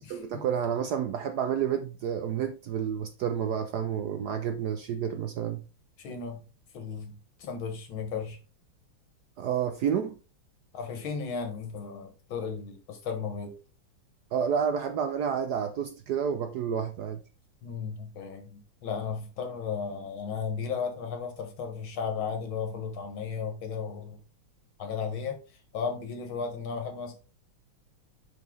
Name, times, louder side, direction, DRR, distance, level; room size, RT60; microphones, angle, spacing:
voice 1, 0.1-5.6 9.4-10.2 14.3-17.2, right 8 dB, 75° right, 0.9 m, -30 dB
voice 2, 6.0-6.4 6.7-8.4 10.7-13.5 17.6-24.2 24.8-25.4 25.7-27.1, left 6 dB, 70° left, 2.2 m, -35 dB
5.5 x 5.5 x 3.9 m
omnidirectional pair, 2.3 m